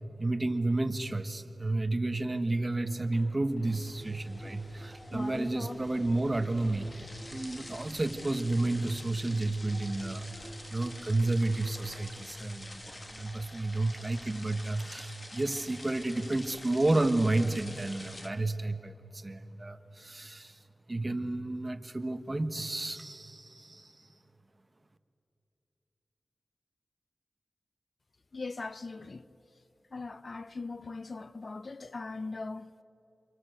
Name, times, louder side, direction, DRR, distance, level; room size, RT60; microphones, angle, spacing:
voice 1, 0.2-20.6 20.9-24.1, right 2 dB, 30° right, 1.4 m, -31 dB
sound 1, 2.7-11.9, equal, 80° left, 6.0 m, -53 dB
sound 2, 3.6-18.3, left 1 dB, 30° left, 2.3 m, -46 dB
voice 2, 28.3-29.3 29.9-32.8, left 3 dB, 50° left, 0.7 m, -40 dB
29.0 x 25.5 x 8.1 m
wide cardioid pair, 95°, 0 cm